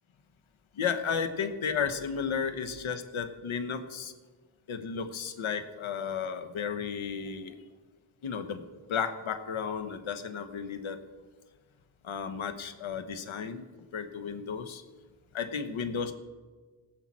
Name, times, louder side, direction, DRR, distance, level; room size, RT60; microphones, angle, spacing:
voice 1, 0.7-4.1 4.7-7.6 8.2-11.0 12.0-13.6 13.9-14.8 15.3-16.1, left 6 dB, 85° left, 10 dB, 1.2 m, -33 dB
16.5 x 5.9 x 7.4 m, 1.4 s
cardioid pair, 45°, 47 cm